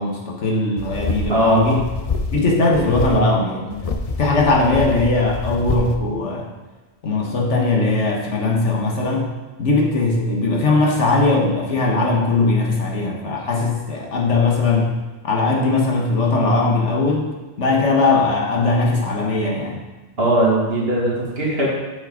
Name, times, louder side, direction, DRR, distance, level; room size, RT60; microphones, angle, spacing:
voice 1, 0.0-1.9 2.3-3.9 4.2-6.5 7.0-9.3 9.6-14.9 15.2-19.8, left 3 dB, 85° left, -1 dB, 1.7 m, -19 dB
sound 1, 0.8-2.4 2.7-3.2 3.7-6.0, left 4 dB, 40° left, 0.5 m, -26 dB
voice 2, 1.3-1.6 20.2-21.7, right 1 dB, 55° right, -5 dB, 2.3 m, -19 dB
8.5 x 6.2 x 3.9 m, 1.2 s
omnidirectional pair, 1.2 m